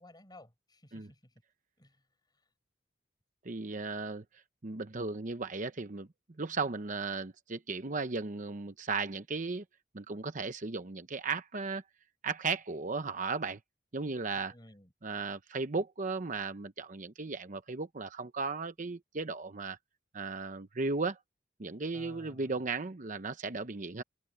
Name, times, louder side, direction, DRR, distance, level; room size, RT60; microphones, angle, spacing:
voice 1, 0.0-1.4 1.8-2.5 14.3-14.9 21.9-22.7, left 1 dB, 20° left, 6.9 m, -56 dB
voice 2, 3.4-6.1 6.4-9.6 9.9-11.8 12.2-13.6 13.9-14.5 15.0-19.8 20.1-21.2 21.6-24.0, right 4 dB, 45° right, 0.9 m, -36 dB
head